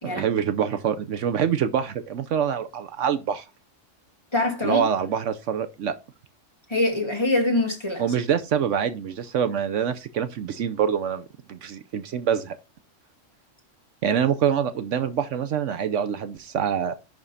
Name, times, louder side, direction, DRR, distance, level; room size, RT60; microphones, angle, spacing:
voice 1, 0.0-3.4 4.6-5.9 8.0-12.6 14.0-17.0, right 8 dB, 70° right, 1.0 m, -25 dB
voice 2, 4.3-4.8 6.7-8.0, left 2 dB, 20° left, 2.2 m, -24 dB
11.0 x 3.6 x 5.5 m
omnidirectional pair, 1.3 m